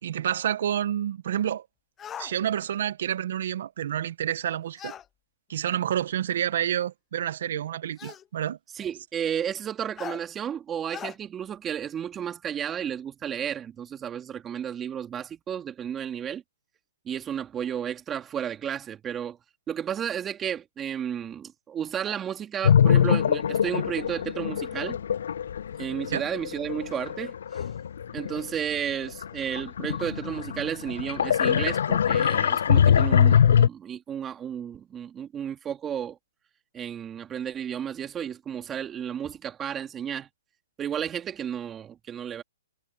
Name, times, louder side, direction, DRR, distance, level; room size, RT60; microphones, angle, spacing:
voice 1, 0.0-1.6 2.2-4.9 5.5-8.6 26.1-26.2, right 10 dB, 60° right, 1.7 m, -29 dB
sound 1, 2.0-2.3 4.8-5.1 6.3-6.4 8.0-8.3 10.0-10.2 10.9-11.2, left 9 dB, 15° left, 0.8 m, -38 dB
voice 2, 8.7-16.4 17.1-19.4 19.7-25.0 25.8-27.6 28.1-36.2 36.7-40.3 40.8-42.4, right 9 dB, 15° right, 2.5 m, -32 dB
sound 2, 22.6-28.6 29.0-33.7, left 8 dB, 70° left, 0.3 m, -23 dB
hypercardioid pair, 145°, 0 cm